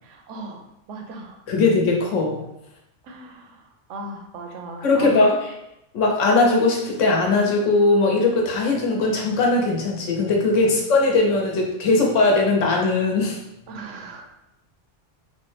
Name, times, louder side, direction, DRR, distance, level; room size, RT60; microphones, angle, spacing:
voice 1, 0.0-1.4 3.0-5.3 10.7-10.8 13.7-14.3, right 2 dB, 80° right, 3 dB, 0.9 m, -38 dB
voice 2, 1.5-2.4 4.8-5.3 5.9-13.4, left 3 dB, 85° left, 0 dB, 1.1 m, -19 dB
3.2 x 2.1 x 3.2 m, 0.84 s
omnidirectional pair, 1.3 m